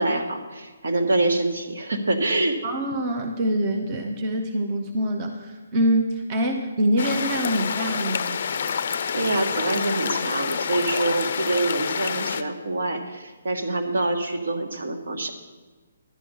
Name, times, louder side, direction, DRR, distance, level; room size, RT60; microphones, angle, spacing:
voice 1, 0.0-2.6 8.9-15.3, right 2 dB, 70° right, 4 dB, 1.6 m, -25 dB
voice 2, 2.6-8.4, equal, 15° right, 3 dB, 0.6 m, -25 dB
sound 1, 7.0-12.4, left 6 dB, 40° left, 0.5 m, -28 dB
11.0 x 9.5 x 5.4 m, 1.4 s
hypercardioid pair, 180°, 0 cm